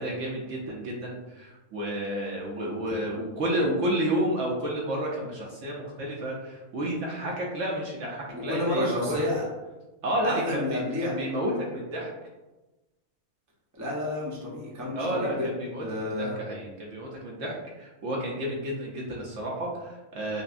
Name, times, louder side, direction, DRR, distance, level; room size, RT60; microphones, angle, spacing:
voice 1, 0.0-9.2 10.0-12.1 14.9-20.4, right 1 dB, 65° right, -3 dB, 1.0 m, -31 dB
voice 2, 8.3-9.5 10.2-11.2 13.7-15.5 15.8-16.4, left 2 dB, 15° right, -6 dB, 0.7 m, -30 dB
5.3 x 2.1 x 2.5 m, 1.1 s
omnidirectional pair, 1.5 m